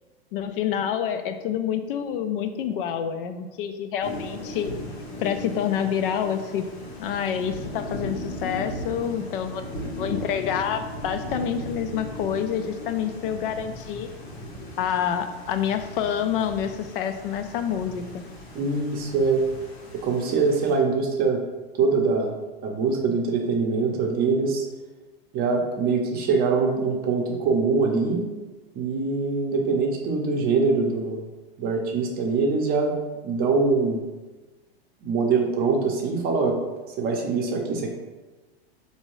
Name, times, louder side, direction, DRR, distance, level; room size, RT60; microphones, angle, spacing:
voice 1, 0.3-4.7 5.2-6.7 7.0-14.1 14.8-18.2, left 8 dB, 60° left, 8 dB, 0.4 m, -27 dB
Thunder / Rain, 4.0-20.8, left 1 dB, 85° left, 1.2 m, -37 dB
voice 2, 18.5-19.4 20.0-21.4 21.8-22.3 22.6-24.6 25.3-28.2 28.7-31.2 31.6-32.9 33.2-34.0 35.0-36.6 37.0-37.9, right 4 dB, 30° right, 1 dB, 0.6 m, -23 dB
4.4 x 2.8 x 3.0 m, 1.2 s
hypercardioid pair, 125°, 31 cm